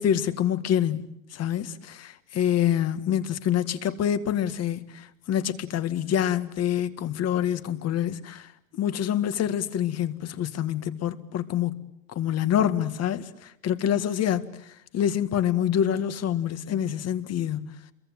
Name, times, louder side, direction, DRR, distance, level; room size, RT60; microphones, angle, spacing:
voice 1, 0.0-11.8 12.1-17.7, left 10 dB, 40° left, 1.9 m, -26 dB
29.0 x 23.0 x 8.9 m
supercardioid pair, 120°, 40 cm